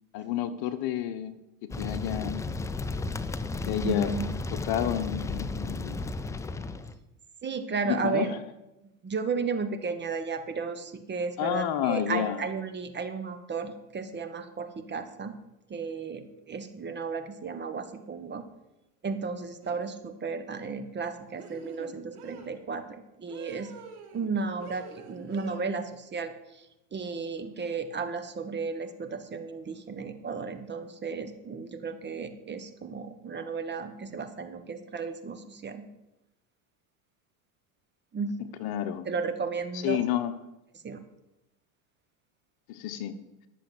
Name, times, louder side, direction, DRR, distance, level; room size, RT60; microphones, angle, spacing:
voice 1, 0.1-1.3 1.6-2.4 3.7-4.1 4.5-6.1 7.8-8.4 11.4-12.4 38.6-39.1 39.8-40.3 42.7-43.2, left 10 dB, 55° left, 10 dB, 1.2 m, -30 dB
sound 1, 1.7-7.0, left 3 dB, 10° left, 0.3 m, -34 dB
voice 2, 3.8-4.3 7.4-8.3 9.0-15.3 15.7-18.4 19.0-23.7 24.1-26.7 26.9-35.9 38.1-38.3 39.0-40.0 40.8-41.0, right 5 dB, 25° right, 9 dB, 1.3 m, -34 dB
sound 2, 19.6-19.9 21.4-22.6 23.3-24.3 24.6-25.6, right 6 dB, 80° right, 2.6 m, -46 dB
11.5 x 7.2 x 7.8 m, 0.93 s
supercardioid pair, 110°, 44 cm